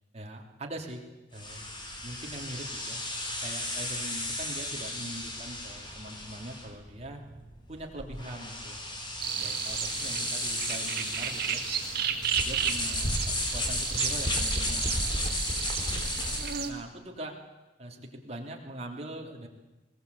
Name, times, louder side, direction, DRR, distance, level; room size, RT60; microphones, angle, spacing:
voice 1, 0.1-1.0 1.3-1.7 2.0-3.0 3.4-7.2 7.7-8.8 9.4-11.6 12.4-15.6 16.6-17.3 17.8-19.5, right 1 dB, 35° right, 1 dB, 3.2 m, -42 dB
sound 1, 1.3-16.7, left 1 dB, 25° left, 3.7 m, -34 dB
sound 2, 9.2-16.7, right 8 dB, 55° right, 2.0 m, -33 dB
20.5 x 19.0 x 8.4 m, 1.1 s
head